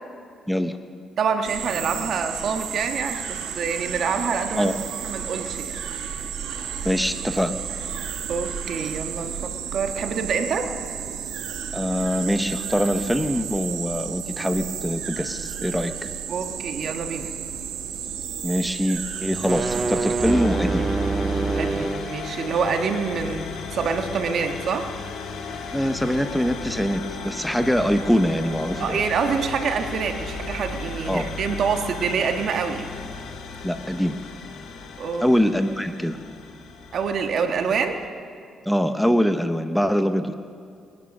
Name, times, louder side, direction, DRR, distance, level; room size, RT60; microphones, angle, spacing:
voice 1, 1.2-4.7 5.0-5.8 8.3-10.7 16.3-17.3 21.6-24.9 28.8-32.9 35.0-35.3 36.9-38.0, right 5 dB, 65° right, 6 dB, 1.4 m, -26 dB
sound 1, 1.4-20.3, right 8 dB, 90° right, 1.3 m, -32 dB
voice 2, 6.8-7.6 11.7-16.1 18.4-20.9 25.7-29.0 31.1-31.3 33.6-34.2 35.2-36.2 38.7-40.3, equal, ahead, 9 dB, 0.8 m, -23 dB
sound 2, 19.3-22.1, right 3 dB, 30° right, 0.4 m, -25 dB
sound 3, 20.3-38.1, left 4 dB, 75° left, 1.6 m, -35 dB
20.0 x 11.0 x 6.4 m, 2.2 s
cardioid pair, 90°, 0 cm